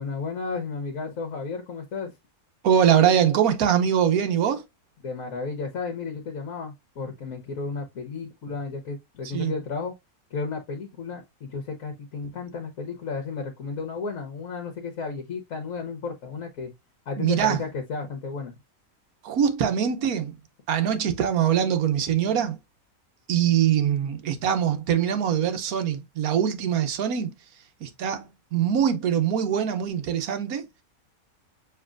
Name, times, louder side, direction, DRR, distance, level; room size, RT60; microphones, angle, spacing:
voice 1, 0.0-2.1 5.0-9.9 10.3-16.7 17.1-18.5, left 4 dB, 70° left, 1.4 m, -33 dB
voice 2, 2.6-4.6 9.2-9.5 17.2-17.6 19.2-20.4 20.7-22.6 23.3-27.3 27.8-30.7, right 9 dB, 80° right, 1.3 m, -23 dB
6.6 x 3.1 x 2.5 m
omnidirectional pair, 1.5 m